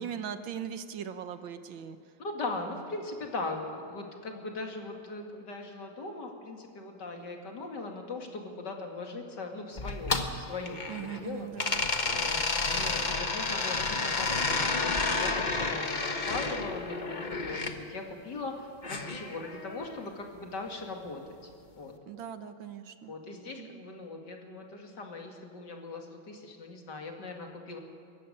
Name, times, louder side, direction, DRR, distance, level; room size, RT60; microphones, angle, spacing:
voice 1, 0.0-2.0 10.9-11.9 22.1-23.1 23.6-23.8, right 8 dB, 75° right, 10 dB, 1.7 m, -39 dB
voice 2, 2.2-11.5 12.1-21.2 21.8-21.9 23.1-27.8, left 3 dB, 55° left, 3 dB, 2.9 m, -39 dB
sound 1, 9.8-11.2 11.6-17.7 18.8-20.0, left 3 dB, 30° left, 1.1 m, -31 dB
23.0 x 14.5 x 9.9 m, 2.5 s
omnidirectional pair, 2.2 m